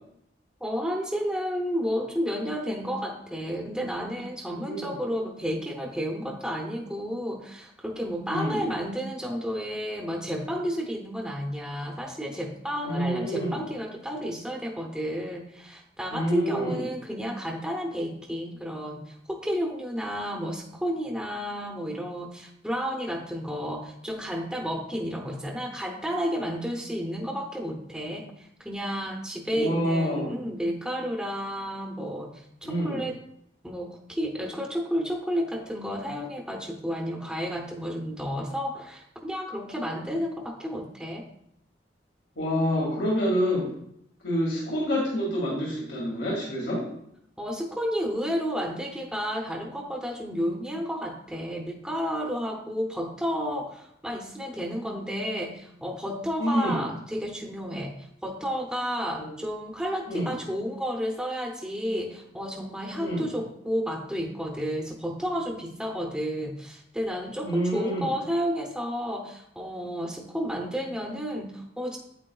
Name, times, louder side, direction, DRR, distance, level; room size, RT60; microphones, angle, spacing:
voice 1, 0.6-33.2 33.6-41.3 47.4-72.0, equal, 5° right, 0 dB, 0.7 m, -31 dB
voice 2, 4.5-5.0 8.3-8.7 12.8-13.6 16.1-16.8 29.5-30.4 32.6-33.0 42.4-43.7 44.2-46.9 56.4-56.9 59.2-59.3 60.1-60.3 62.9-63.2 67.4-68.1, equal, 85° left, -4 dB, 2.0 m, -27 dB
8.8 x 8.2 x 2.3 m, 0.73 s
head